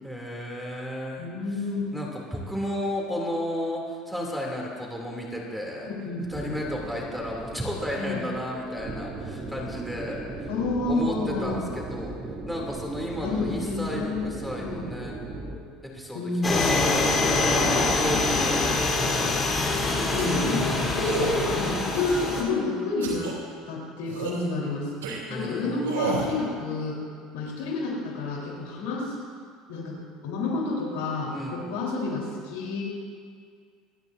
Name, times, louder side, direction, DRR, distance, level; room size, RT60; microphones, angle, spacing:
voice 1, 0.0-1.3 1.9-5.9 6.3-10.5 10.9-12.2 12.5-15.2 15.8-19.3 20.5-21.0 25.3-26.2 31.3-31.7, equal, ahead, -3 dB, 2.9 m, -33 dB
voice 2, 1.2-1.8 5.8-6.6 7.9-8.2 10.5-11.6 13.2-14.8 16.1-16.8 20.1-20.6 20.9-23.3 23.7-24.9 25.3-27.0 27.3-29.1 29.7-32.8, left 3 dB, 80° left, -3 dB, 3.9 m, -29 dB
sound 1, 6.3-15.6, right 2 dB, 35° right, 2.6 m, -37 dB
sound 2, 16.4-22.4, left 3 dB, 25° left, 3.9 m, -24 dB
sound 3, 20.2-20.5 21.0-21.4 21.9-22.5 23.0-23.3 24.1-24.5 25.0-25.2 25.8-26.3, right 5 dB, 90° right, 2.9 m, -31 dB
27.0 x 10.5 x 2.7 m, 2.1 s
supercardioid pair, 95°, 0 cm